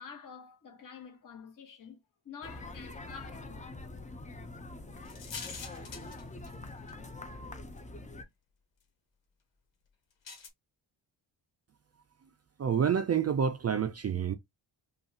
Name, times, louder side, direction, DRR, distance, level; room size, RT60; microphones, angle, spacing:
voice 1, 0.0-2.0 2.2-3.8, left 6 dB, 45° left, 1.3 m, -48 dB
sound 1, 2.4-8.2, left 2 dB, 15° left, 0.6 m, -44 dB
sound 2, 5.0-6.9 7.8-7.9 10.2-10.5, left 5 dB, 80° left, 1.5 m, -44 dB
voice 2, 12.6-14.4, right 7 dB, 35° right, 0.4 m, -28 dB
5.2 x 2.4 x 2.8 m
wide cardioid pair, 120°, 44 cm